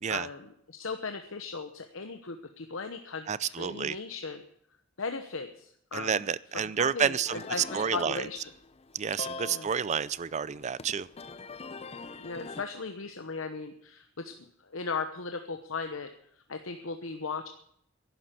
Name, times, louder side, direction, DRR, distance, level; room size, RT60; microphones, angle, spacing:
voice 1, 0.1-4.4 5.0-6.2 6.8-8.4 9.4-9.7 12.2-16.1 16.5-17.5, left 4 dB, 85° left, 7 dB, 1.0 m, -37 dB
voice 2, 3.3-4.0 5.9-7.4 7.7-8.3 8.9-11.1, right 7 dB, 35° right, 19 dB, 0.4 m, -30 dB
sound 1, 7.3-12.6, left 4 dB, 30° left, 0.6 m, -44 dB
11.5 x 10.5 x 9.3 m, 0.71 s
head